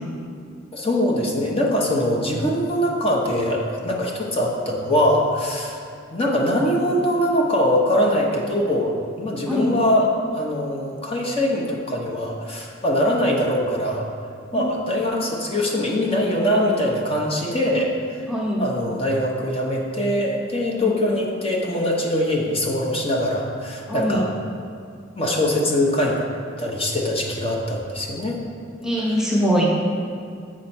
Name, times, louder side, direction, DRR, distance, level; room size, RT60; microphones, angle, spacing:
voice 1, 0.7-5.8 6.1-10.1 10.3-14.1 14.5-18.2 18.6-24.3 25.2-26.2 26.6-28.4, left 1 dB, 30° left, -2 dB, 0.8 m, -22 dB
voice 2, 9.5-9.8 14.5-14.6 18.3-18.7 20.8-21.2 23.9-24.2 28.8-29.8, equal, 5° right, -4 dB, 0.7 m, -22 dB
7.4 x 5.6 x 4.4 m, 2.3 s
head